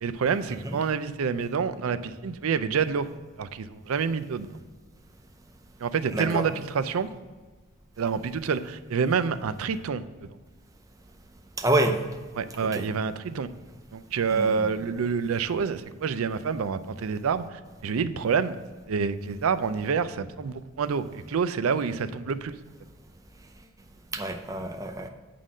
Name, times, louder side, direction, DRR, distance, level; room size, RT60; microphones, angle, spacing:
voice 1, 0.0-3.1 3.4-4.5 5.8-7.1 8.0-10.4 12.4-13.5 13.9-18.6 18.9-22.5, right 6 dB, 85° right, 13 dB, 0.4 m, -27 dB
voice 2, 6.1-6.5 11.6-12.0 12.6-12.8 14.3-14.7 24.1-25.1, right 1 dB, 15° right, 5 dB, 0.6 m, -27 dB
8.5 x 3.8 x 6.1 m, 1.4 s
head